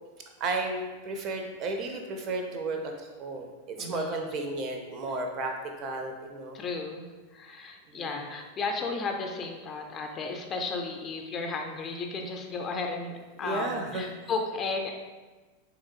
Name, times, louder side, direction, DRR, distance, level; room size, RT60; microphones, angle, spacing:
voice 1, 0.4-3.5 3.8-5.5 5.8-6.6 7.9-8.2 13.4-14.1, right 2 dB, 35° right, 3 dB, 0.4 m, -33 dB
voice 2, 3.8-4.3 5.1-5.2 6.5-14.9, left 3 dB, 25° left, 3 dB, 0.4 m, -34 dB
3.5 x 2.9 x 2.6 m, 1.3 s
figure-of-eight pair, 90°, 0 cm